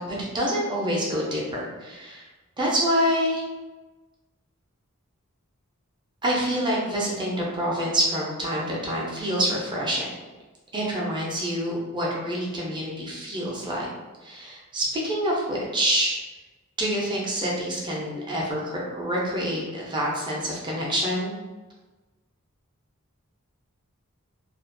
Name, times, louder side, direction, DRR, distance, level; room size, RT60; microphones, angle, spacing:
voice 1, 0.3-2.2 2.6-3.4 6.2-10.1 10.7-13.9 14.2-16.2 16.8-21.3, equal, 20° right, -4 dB, 0.5 m, -26 dB
2.4 x 2.1 x 2.5 m, 1.2 s
head